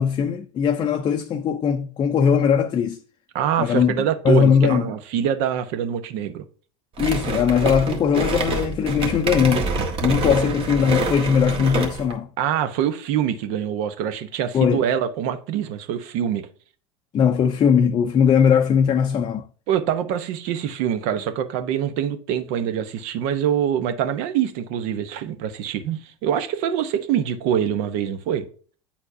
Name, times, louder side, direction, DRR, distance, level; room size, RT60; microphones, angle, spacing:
voice 1, 0.0-3.0 3.6-4.8 7.0-12.3 14.5-14.8 17.1-19.5, left 7 dB, 30° left, 0.5 m, -20 dB
voice 2, 3.3-6.4 10.2-10.9 12.4-16.5 19.7-28.5, right 9 dB, 60° right, 0.9 m, -25 dB
sound 1, 7.0-12.1, right 3 dB, 40° right, 1.4 m, -26 dB
8.5 x 4.3 x 2.7 m
hypercardioid pair, 85°, 15 cm